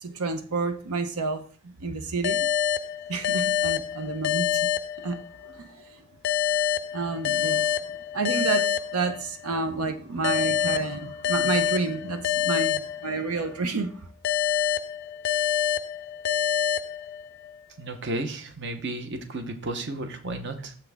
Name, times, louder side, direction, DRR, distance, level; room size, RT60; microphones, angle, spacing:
voice 1, 0.0-2.5 3.1-4.7 5.0-6.0 6.9-14.1, right 3 dB, 85° right, 8 dB, 0.7 m, -30 dB
sound 1, 2.2-5.6 6.2-9.6 10.2-13.6 14.2-17.6, left 10 dB, 50° left, 0.3 m, -27 dB
voice 2, 17.8-20.7, right 2 dB, 50° right, 7 dB, 0.8 m, -33 dB
6.9 x 6.0 x 3.4 m, 0.43 s
head